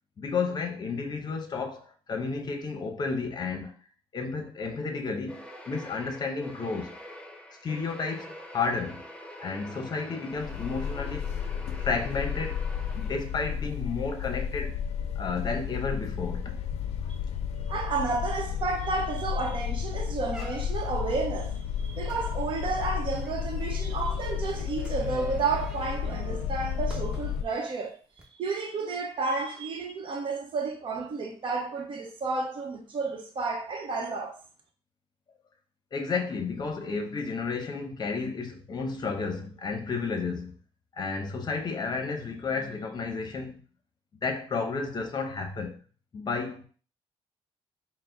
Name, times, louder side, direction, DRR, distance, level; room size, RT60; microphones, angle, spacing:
voice 1, 0.2-3.7 4.1-7.0 7.6-9.0 9.4-11.3 11.7-12.6 12.9-14.7 15.2-16.6 35.9-40.5 41.0-43.6 44.2-45.8 46.1-46.7, left 4 dB, 40° left, 0.8 m, -32 dB
sound 1, 5.3-13.6, left 1 dB, 10° left, 0.6 m, -45 dB
sound 2, 10.3-27.4, left 8 dB, 80° left, 0.4 m, -32 dB
voice 2, 17.7-28.0 28.4-34.4, right 4 dB, 50° right, 0.9 m, -31 dB
sound 3, 18.5-18.6 19.0-19.3 19.7-19.8 20.3-21.0 22.0-27.5 28.1-28.2, equal, 5° right, 1.1 m, -47 dB
4.6 x 2.1 x 3.8 m
cardioid pair, 105°, 11 cm